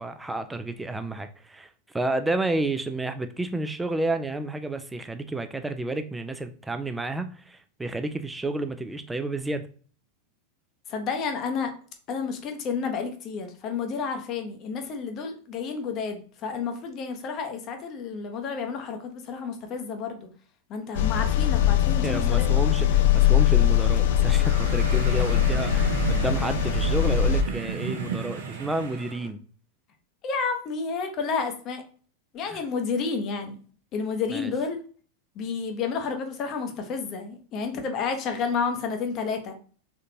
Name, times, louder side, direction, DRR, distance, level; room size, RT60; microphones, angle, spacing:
voice 1, 0.0-1.7 1.9-9.6 22.0-29.4 32.5-32.6 34.3-34.5, right 2 dB, 10° right, 0.4 m, -30 dB
voice 2, 10.9-11.7 12.1-20.3 20.7-22.5 30.2-31.8 32.3-33.6 33.9-34.8 35.3-39.5, left 5 dB, 35° left, 0.8 m, -30 dB
sound 1, 20.9-27.4, left 9 dB, 55° left, 0.4 m, -21 dB
sound 2, 24.2-29.3, right 5 dB, 60° right, 0.7 m, -35 dB
3.8 x 3.5 x 2.7 m
figure-of-eight pair, 90°, 0 cm